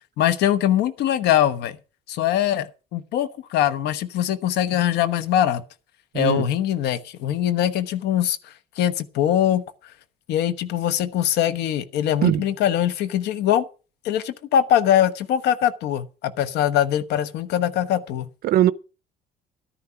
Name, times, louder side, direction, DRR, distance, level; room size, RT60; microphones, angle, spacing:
voice 1, 0.2-1.8 2.1-5.6 6.1-9.6 10.3-13.6 14.0-18.3, left 10 dB, 80° left, 1.2 m, -22 dB
voice 2, 6.1-6.5 12.2-12.5 18.4-18.7, right 13 dB, 65° right, 0.6 m, -19 dB
12.5 x 10.0 x 5.8 m
cardioid pair, 110°, 17 cm